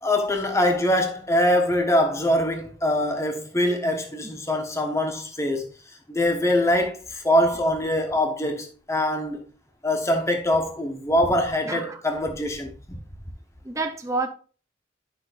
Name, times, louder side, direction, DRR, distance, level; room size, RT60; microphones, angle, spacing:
voice 1, 0.0-5.7 6.1-9.4 9.8-13.0, left 1 dB, 15° left, 1.2 m, -23 dB
voice 2, 11.7-12.0 13.6-14.3, right 3 dB, 15° right, 0.7 m, -28 dB
10.5 x 6.0 x 2.5 m
head